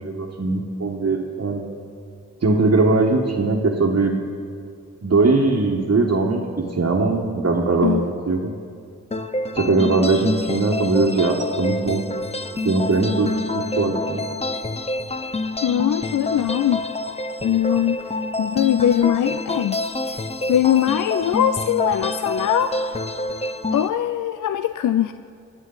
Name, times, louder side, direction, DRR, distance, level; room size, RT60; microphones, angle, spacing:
voice 1, 0.0-1.7 2.4-4.2 5.0-8.0 8.2-8.5 9.5-12.0 12.6-14.2, right 3 dB, 50° right, -3 dB, 1.4 m, -20 dB
sound 1, 9.1-23.9, left 2 dB, 20° left, 0.8 m, -27 dB
voice 2, 15.6-16.8 17.4-18.0 18.4-19.8 20.1-20.2 20.5-22.7 23.7-25.1, left 11 dB, 70° left, 11 dB, 0.4 m, -21 dB
23.5 x 8.1 x 4.0 m, 2.4 s
cardioid pair, 45°, 32 cm